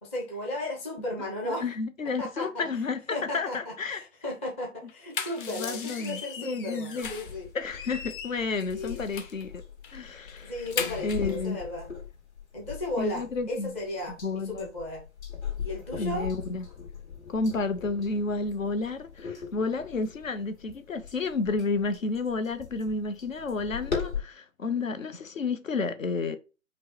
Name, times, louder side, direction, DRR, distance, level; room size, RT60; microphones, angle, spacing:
voice 1, 0.0-1.7 2.2-2.7 3.1-7.5 8.7-9.0 10.4-11.9 12.5-15.1 15.6-16.3, left 1 dB, 10° left, 0.4 m, -35 dB
voice 2, 1.6-4.0 5.4-7.1 7.5-9.5 9.9-10.7 11.0-11.6 13.0-13.7 14.2-14.7 16.0-16.6 17.3-26.4, left 3 dB, 75° left, 0.8 m, -31 dB
sound 1, 4.9-7.4 7.7-9.4 9.8-10.0 10.3-11.3, left 6 dB, 40° left, 0.9 m, -37 dB
sound 2, 7.0-24.2, left 7 dB, 55° left, 2.3 m, -40 dB
5.2 x 2.1 x 4.4 m
figure-of-eight pair, 125°, 40 cm